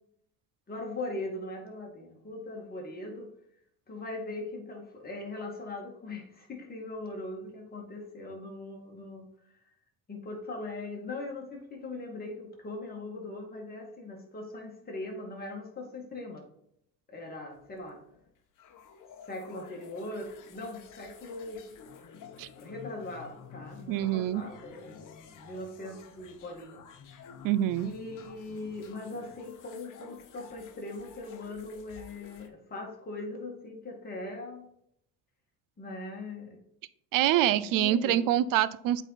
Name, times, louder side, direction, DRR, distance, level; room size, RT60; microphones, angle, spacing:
voice 1, 0.7-3.3 3.9-9.3 10.1-16.4 17.1-18.0 19.3-21.6 22.6-26.8 27.8-34.7 35.8-36.6 37.3-38.2, left 2 dB, 25° left, 0 dB, 2.1 m, -40 dB
sound 1, 17.5-32.5, left 6 dB, 55° left, 1.1 m, -51 dB
voice 2, 23.9-24.4 27.4-27.9 37.1-39.0, right 12 dB, 60° right, 17 dB, 0.5 m, -25 dB
8.0 x 4.1 x 4.1 m, 0.71 s
cardioid pair, 115°, 38 cm